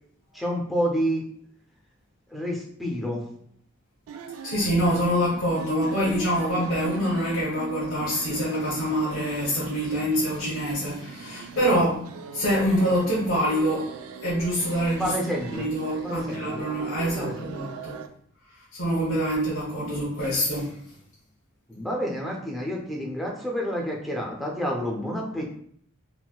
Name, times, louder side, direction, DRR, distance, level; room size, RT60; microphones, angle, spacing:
voice 1, 0.3-1.3 2.3-3.2 15.0-15.7 16.0-16.6 17.1-17.7 19.8-19.9 21.7-25.4, equal, ahead, -2 dB, 0.4 m, -29 dB
sound 1, 4.1-18.1, right 5 dB, 90° right, 0.3 m, -40 dB
voice 2, 4.4-12.0 12.3-13.9 14.2-15.1 15.5-18.0 18.7-20.8, equal, 85° left, -6 dB, 0.9 m, -25 dB
3.9 x 2.1 x 2.3 m, 0.64 s
head